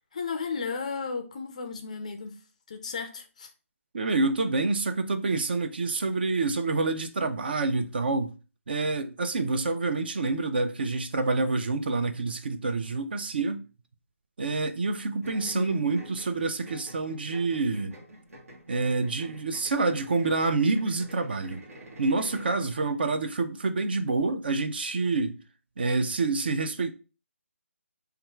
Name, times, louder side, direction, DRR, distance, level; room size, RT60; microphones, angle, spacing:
voice 1, 0.1-2.4 2.7-3.5 15.4-15.8, left 5 dB, 30° left, 0.4 m, -34 dB
voice 2, 3.9-8.3 8.7-13.6 14.4-17.9 18.7-21.6 22.0-25.4 25.8-26.9, right 3 dB, 40° right, 0.4 m, -27 dB
sound 1, 15.2-22.6, right 1 dB, 70° right, 1.3 m, -48 dB
3.4 x 2.4 x 4.4 m
hypercardioid pair, 170°, 8 cm